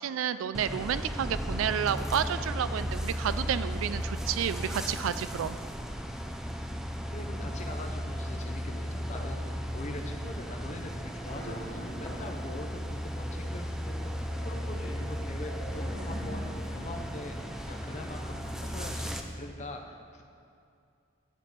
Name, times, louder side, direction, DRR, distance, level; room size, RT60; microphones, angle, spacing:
voice 1, 0.0-5.6, right 8 dB, 80° right, 14 dB, 0.3 m, -31 dB
sound 1, 0.5-19.2, equal, ahead, 0.3 m, -35 dB
voice 2, 7.1-17.4 17.7-20.2, left 2 dB, 35° left, 3 dB, 0.6 m, -43 dB
Glass, 7.2-12.3, left 1 dB, 15° left, 1.0 m, -52 dB
sound 2, 11.2-19.3, equal, 55° left, 2.3 m, -45 dB
8.2 x 5.3 x 6.6 m, 2.4 s
head